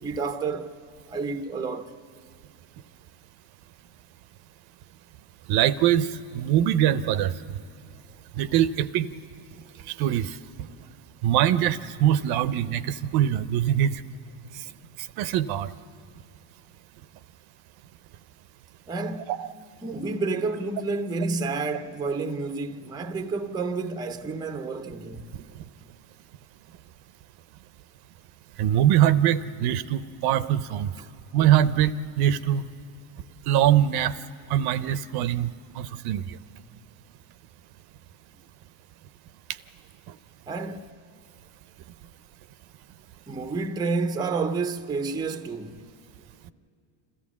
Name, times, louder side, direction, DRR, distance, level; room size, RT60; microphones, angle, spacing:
voice 1, 0.0-0.7 1.1-1.9 18.9-19.3 19.8-25.3 40.5-40.9 43.3-45.9, right 4 dB, 10° right, 0.5 m, -30 dB
voice 2, 5.5-6.1 6.3-7.3 8.4-9.1 10.0-10.4 11.2-14.0 15.2-15.7 19.3-19.5 28.6-30.9 31.3-32.6 33.5-34.1 34.5-35.5 35.8-36.2, right 11 dB, 55° right, 0.6 m, -22 dB
27.0 x 14.0 x 7.2 m
supercardioid pair, 130°, 46 cm